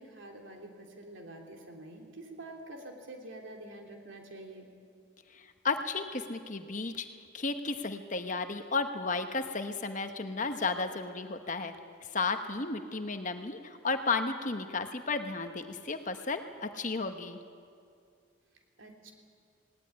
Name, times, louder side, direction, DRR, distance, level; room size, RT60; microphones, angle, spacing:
voice 1, 0.0-4.7 18.8-19.1, right 1 dB, 65° right, 2 dB, 3.1 m, -47 dB
voice 2, 5.3-7.1 7.3-11.7 12.1-17.4, left 4 dB, 40° left, 8 dB, 1.0 m, -33 dB
19.0 x 18.0 x 9.6 m, 2.3 s
head